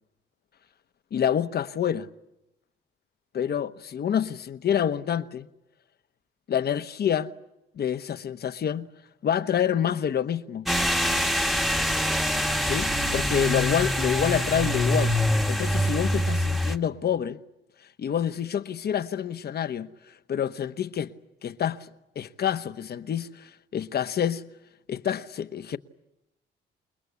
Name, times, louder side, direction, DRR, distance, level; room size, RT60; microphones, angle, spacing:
voice 1, 1.1-2.1 3.3-5.5 6.5-7.3 7.8-8.9 9.2-10.7 12.6-15.1 15.5-17.4 18.0-19.9 20.3-21.1 21.4-21.9 22.1-24.4 24.9-25.8, left 9 dB, 55° left, 1.1 m, -27 dB
sound 1, 10.7-16.8, equal, ahead, 1.3 m, -24 dB
29.0 x 20.5 x 8.3 m
cardioid pair, 90°, 20 cm